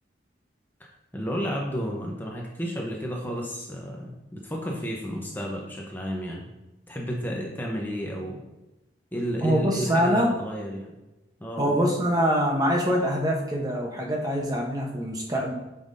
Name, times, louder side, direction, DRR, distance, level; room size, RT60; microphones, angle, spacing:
voice 1, 1.1-6.5 6.9-8.4 9.1-10.9 11.4-11.8, equal, 10° left, -1 dB, 0.8 m, -32 dB
voice 2, 9.4-10.3 11.6-15.5, equal, 20° right, -1 dB, 1.0 m, -24 dB
8.5 x 5.6 x 2.7 m, 1.0 s
head